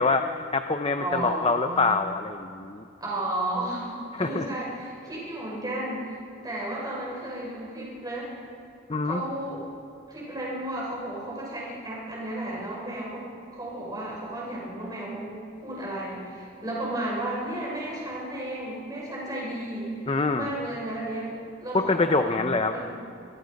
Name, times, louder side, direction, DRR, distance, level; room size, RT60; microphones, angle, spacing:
voice 1, 0.0-2.8 4.1-4.5 8.9-9.2 20.1-20.5 21.7-22.8, left 3 dB, 25° left, 7 dB, 0.6 m, -25 dB
voice 2, 1.0-2.0 3.0-6.2 6.4-8.3 9.0-9.6 10.1-19.9 20.3-23.0, right 1 dB, 20° right, -4 dB, 6.5 m, -33 dB
23.5 x 21.0 x 5.3 m, 2.7 s
head